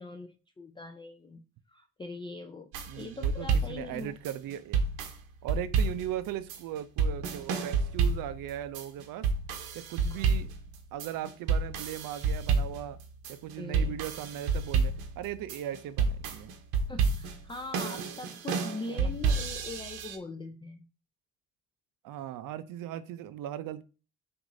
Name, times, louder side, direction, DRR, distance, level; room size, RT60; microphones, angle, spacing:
voice 1, 0.0-2.7 3.0-4.1 10.1-10.3 13.6-13.9 16.9-20.9, left 3 dB, 15° left, 0.4 m, -42 dB
sound 1, 2.7-20.2, right 5 dB, 90° right, 0.8 m, -30 dB
voice 2, 2.9-4.8 5.4-9.3 9.7-10.5 10.9-13.0 13.3-16.5 18.9-19.2 22.0-23.8, right 11 dB, 70° right, 0.5 m, -38 dB
6.0 x 2.6 x 2.5 m
supercardioid pair, 80°, 35 cm